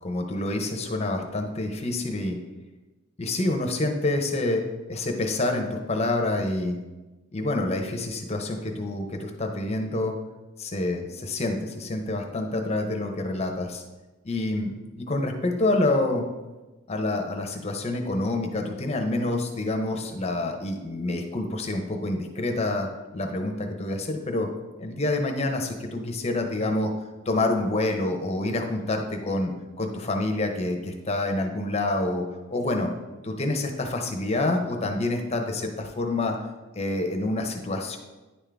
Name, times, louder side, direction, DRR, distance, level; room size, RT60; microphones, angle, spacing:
voice 1, 0.0-2.4 3.2-4.6 4.9-6.8 7.3-10.1 10.6-13.8 14.2-16.3 16.9-22.9 23.1-24.5 24.8-26.9 27.3-29.5 29.8-32.2 32.5-32.9 33.2-36.3 36.7-38.0, left 2 dB, 30° left, 4 dB, 0.7 m, -27 dB
9.7 x 3.7 x 3.4 m, 1.1 s
head